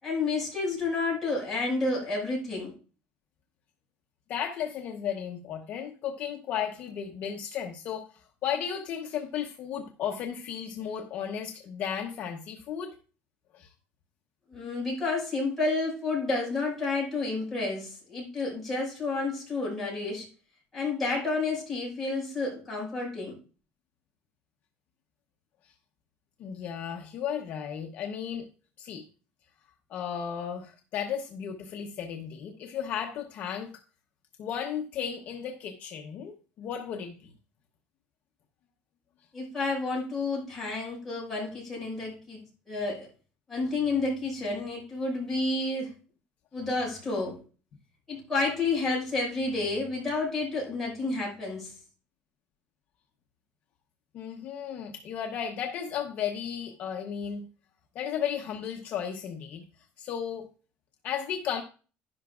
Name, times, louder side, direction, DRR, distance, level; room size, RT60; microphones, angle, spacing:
voice 1, 0.0-2.7 14.5-20.3 20.7-23.3 39.3-42.4 42.7-43.1 43.5-45.9 46.5-47.4 48.1-51.7, left 3 dB, 5° left, -6 dB, 5.8 m, -30 dB
voice 2, 4.3-12.9 13.5-13.7 26.4-28.5 28.8-29.0 29.9-33.8 34.4-37.3 54.1-57.5 57.9-59.6 60.0-60.5 61.0-61.6, left 8 dB, 40° left, 2 dB, 0.9 m, -34 dB
11.5 x 11.0 x 2.4 m, 0.37 s
cardioid pair, 180°, 4 cm